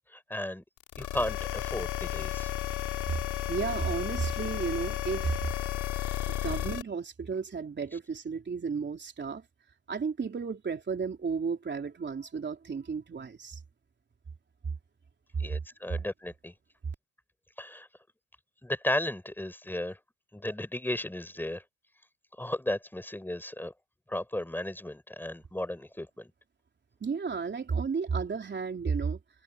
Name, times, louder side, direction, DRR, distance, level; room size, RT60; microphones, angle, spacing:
voice 1, 0.1-0.6 1.0-2.5 15.4-16.5 17.6-17.9 18.6-20.0 20.3-21.6 22.4-23.7 24.1-26.3, left 1 dB, 5° left, 4.8 m, -34 dB
sound 1, 0.8-6.8, left 13 dB, 80° left, 3.5 m, -33 dB
voice 2, 3.5-5.4 6.3-9.4 9.9-13.6 27.0-29.2, right 5 dB, 35° right, 3.6 m, -33 dB
cardioid pair, 90°, 30 cm